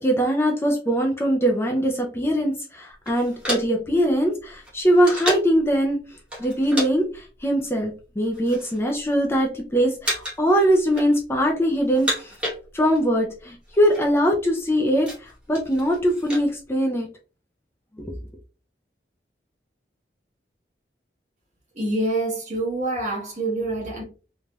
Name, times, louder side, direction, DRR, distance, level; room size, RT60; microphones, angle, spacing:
voice 1, 0.0-12.4 12.7-17.1 18.0-18.1, equal, 15° left, 0.4 m, -22 dB
sound 1, 3.0-5.6 6.3-6.9 7.2-7.4 8.1-8.8 9.1-9.6 10.0-10.5 10.8-11.5 11.8-13.1 13.4-13.5 13.7-14.0 14.5-16.5, equal, 5° right, 1.0 m, -31 dB
voice 2, 21.7-24.0, right 2 dB, 40° right, 1.1 m, -26 dB
3.2 x 2.5 x 2.2 m
head